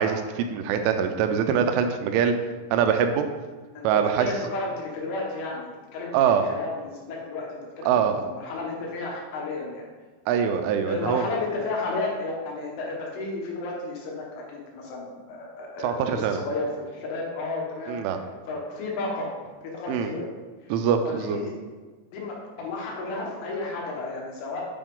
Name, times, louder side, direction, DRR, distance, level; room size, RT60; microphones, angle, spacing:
voice 1, 0.0-2.3 2.7-3.3 3.8-4.3 6.1-6.5 7.9-8.2 10.3-11.3 15.8-16.4 17.9-18.2 19.9-20.1 20.7-21.4, right 7 dB, 85° right, 7 dB, 3.1 m, -23 dB
voice 2, 4.2-9.9 10.9-19.3 19.7-20.3 20.6-20.7 21.0-21.5 22.1-24.6, left 3 dB, 80° left, -2 dB, 3.9 m, -33 dB
9.0 x 5.3 x 3.8 m, 1.3 s
omnidirectional pair, 5.5 m